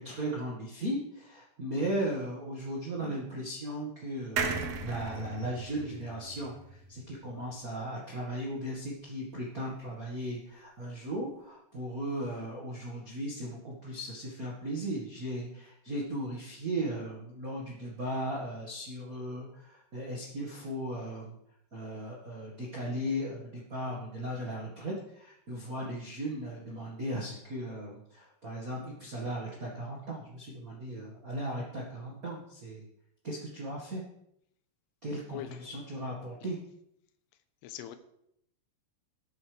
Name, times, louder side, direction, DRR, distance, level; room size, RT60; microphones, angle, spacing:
voice 1, 0.0-21.3 21.7-32.8 33.2-34.0 35.0-36.6, right 1 dB, 40° right, -3 dB, 1.2 m, -37 dB
sound 1, 4.4-7.8 8.2-8.3 8.5-8.6, right 4 dB, 75° right, 1.5 m, -37 dB
voice 2, 35.3-35.8 36.4-36.5 37.6-38.0, left 11 dB, 80° left, 9 dB, 3.0 m, -42 dB
20.5 x 8.5 x 3.5 m, 0.76 s
omnidirectional pair, 4.7 m